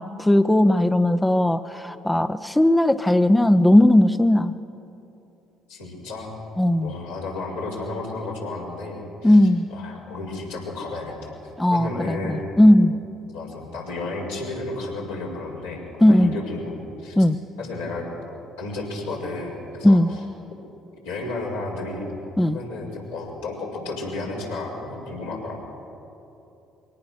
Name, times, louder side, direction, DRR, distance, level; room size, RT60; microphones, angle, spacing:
voice 1, 0.0-4.5 6.6-6.9 9.2-9.7 11.6-13.0 16.0-16.3 17.2-17.4 19.8-20.1 22.4-22.6, left 1 dB, 10° left, 9 dB, 0.7 m, -17 dB
voice 2, 5.7-6.3 6.8-9.4 9.7-11.3 11.7-12.5 13.3-17.2 17.6-18.1 18.6-20.0 21.0-22.1 22.4-25.6, left 2 dB, 85° left, -4 dB, 5.2 m, -32 dB
23.0 x 18.0 x 6.6 m, 2.9 s
hypercardioid pair, 55°, 0 cm